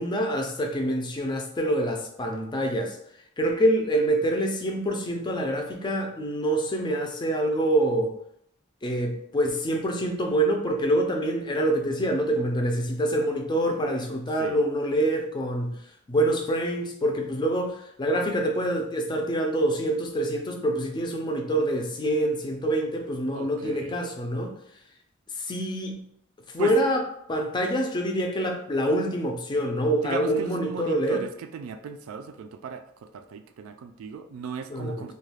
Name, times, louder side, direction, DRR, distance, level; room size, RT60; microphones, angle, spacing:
voice 1, 0.0-3.0 3.4-8.1 8.8-15.8 16.1-24.6 25.4-26.0 26.5-27.0 27.3-31.2 34.7-35.1, right 1 dB, 20° left, 2 dB, 0.4 m, -26 dB
voice 2, 23.3-24.0 26.6-26.8 30.0-35.1, right 6 dB, 85° right, 8 dB, 0.3 m, -37 dB
2.3 x 2.3 x 3.3 m, 0.71 s
head